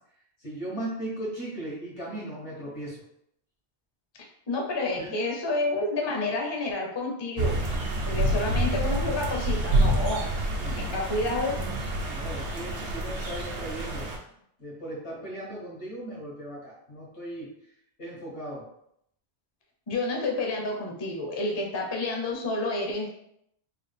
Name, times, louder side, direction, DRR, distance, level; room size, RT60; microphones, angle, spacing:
voice 1, 0.4-3.0 5.0-5.1 10.5-11.1 12.1-14.1 14.6-17.5 18.0-18.7, right 1 dB, 85° left, -5 dB, 1.8 m, -37 dB
voice 2, 4.5-7.6 8.1-10.2 10.8-11.6 19.9-23.1, left 2 dB, 35° left, 0 dB, 0.5 m, -29 dB
sound 1, 7.4-14.2, right 1 dB, 85° right, 1.0 m, -28 dB
3.8 x 2.4 x 3.3 m, 0.74 s
omnidirectional pair, 1.1 m